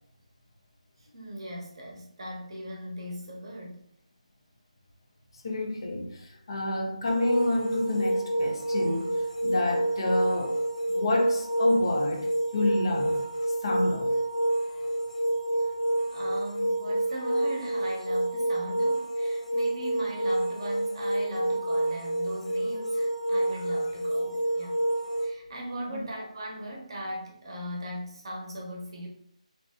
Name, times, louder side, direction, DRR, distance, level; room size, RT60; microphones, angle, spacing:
voice 1, 1.1-3.8 16.1-24.7 25.2-29.1, equal, 45° right, 0.7 m, -39 dB
voice 2, 5.4-10.6 10.9-14.1 23.7-23.9 25.9-26.1, left 2 dB, 40° left, 0.4 m, -29 dB
sound 1, 7.0-25.3, right 1 dB, 65° left, 0.8 m, -28 dB
2.6 x 2.0 x 2.4 m
figure-of-eight pair, 155°, 4 cm